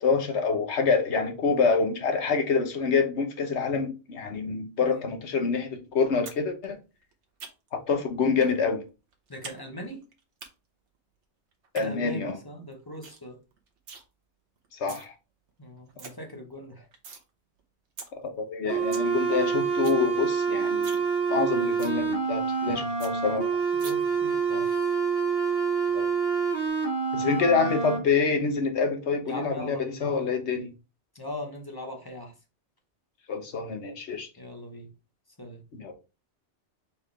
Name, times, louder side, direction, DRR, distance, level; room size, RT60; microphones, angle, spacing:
voice 1, 0.0-6.8 7.7-8.8 11.7-12.4 14.7-15.1 18.2-21.0 21.3-23.6 25.9-26.1 27.1-30.7 33.3-34.3 35.8-35.9, left 5 dB, 75° left, 1.2 m, -26 dB
sound 1, 6.3-6.4 6.7-7.8 8.4-8.6 8.9-9.6 9.8-10.5 11.5-11.9 12.3-12.4 12.7-12.8 13.0-13.2 13.5-14.0 14.6-15.1 15.5-15.6 15.8-16.1 16.5-17.2 17.6-17.7 18.0-18.1 18.5-18.6 18.7-19.1 19.4-19.5 19.7-20.0 20.3-20.4 20.7-21.1 21.4-21.5 21.8-22.0 22.4-22.5 22.7-22.8 23.0-23.1 23.8-23.9, right 5 dB, 80° right, 1.2 m, -43 dB
voice 2, 9.3-10.1 11.7-13.4 15.6-16.9 18.8-19.0 23.7-24.9 29.3-30.3 31.1-32.3 34.4-34.9 35.4-35.6, left 1 dB, 20° left, 0.9 m, -40 dB
sound 2, 18.7-28.0, right 5 dB, 60° right, 1.6 m, -27 dB
4.3 x 3.5 x 3.3 m
omnidirectional pair, 1.2 m